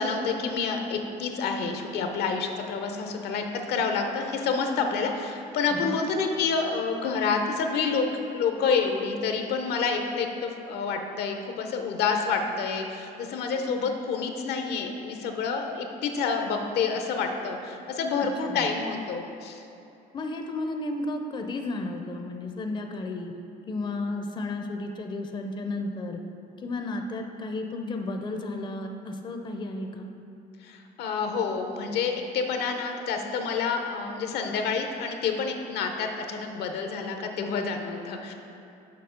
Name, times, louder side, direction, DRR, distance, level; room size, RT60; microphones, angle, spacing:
voice 1, 0.0-8.1 8.3-19.6 30.6-38.3, left 5 dB, 75° left, 4 dB, 0.8 m, -28 dB
voice 2, 18.2-18.6 20.1-23.3 23.7-26.2 26.6-30.1, left 2 dB, 25° left, 4 dB, 0.5 m, -33 dB
6.8 x 4.9 x 5.1 m, 2.7 s
cardioid pair, 110°, 17 cm